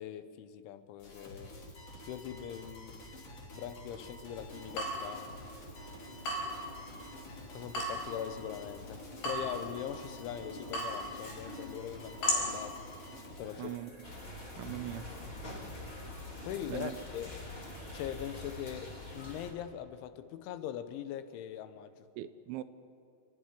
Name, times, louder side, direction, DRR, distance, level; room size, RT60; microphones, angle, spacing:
voice 1, 0.0-1.5 2.0-3.0 3.5-5.3 7.5-12.8 13.3-13.8 16.4-17.3 17.9-22.1, left 10 dB, 80° left, 11 dB, 3.2 m, -41 dB
sound 1, 1.0-18.6, left 1 dB, 35° left, 3.5 m, -50 dB
Water tap faucet / Drip, 4.4-13.6, left 1 dB, 60° left, 6.5 m, -39 dB
voice 2, 13.6-13.9 14.6-15.1 16.7-17.0 22.2-22.6, right 14 dB, 80° right, 12 dB, 2.9 m, -40 dB
sound 2, 14.0-19.5, left 1 dB, 20° left, 1.8 m, -45 dB
28.5 x 12.5 x 9.8 m, 2.4 s
omnidirectional pair, 5.6 m